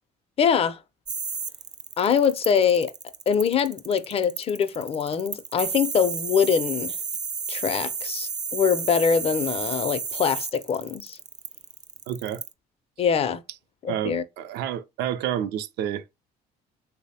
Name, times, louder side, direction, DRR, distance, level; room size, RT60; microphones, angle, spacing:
voice 1, 0.4-0.8 2.0-2.9 3.3-6.9 7.5-11.2 13.0-13.4 13.8-14.2, left 7 dB, 35° left, 0.4 m, -23 dB
sound 1, 1.1-12.5, right 5 dB, 25° right, 0.4 m, -32 dB
voice 2, 12.1-12.4 13.9-16.0, right 10 dB, 80° right, 0.5 m, -29 dB
3.3 x 2.0 x 4.1 m
cardioid pair, 110°, 17 cm